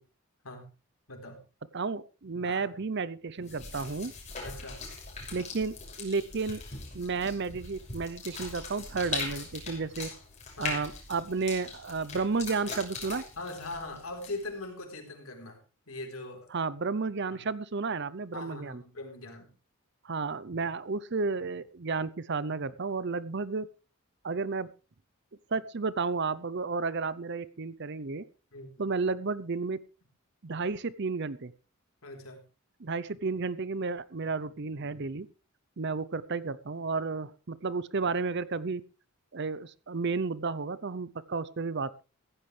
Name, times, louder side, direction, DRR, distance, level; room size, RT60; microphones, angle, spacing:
voice 1, 1.1-1.4 2.4-2.7 4.4-4.8 10.6-10.8 13.4-15.6 15.9-16.5 18.3-19.5 28.5-28.7 32.0-32.4, left 2 dB, 75° left, 3 dB, 3.9 m, -41 dB
voice 2, 1.7-4.1 5.3-6.6 6.9-10.1 10.6-13.2 16.5-18.8 20.0-23.7 24.2-24.7 25.5-28.2 28.8-29.8 30.4-31.5 32.8-35.3 35.8-38.8 39.3-42.0, right 4 dB, 50° right, 17 dB, 0.7 m, -32 dB
sound 1, 3.4-14.6, left 4 dB, 30° left, 6.1 m, -41 dB
15.5 x 15.5 x 3.3 m, 0.33 s
head